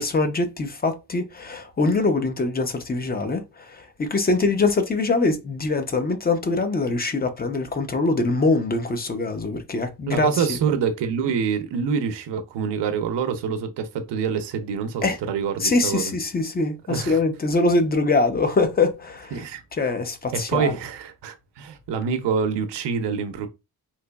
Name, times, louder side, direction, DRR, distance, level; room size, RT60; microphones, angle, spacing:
voice 1, 0.0-10.6 15.0-15.2 15.6-19.4 19.8-20.8, left 3 dB, 25° left, 0.6 m, -23 dB
voice 2, 10.1-16.1 16.9-17.2 19.3-19.6 20.3-23.5, right 6 dB, 90° right, 0.6 m, -26 dB
3.9 x 2.9 x 2.2 m
cardioid pair, 130°, 41 cm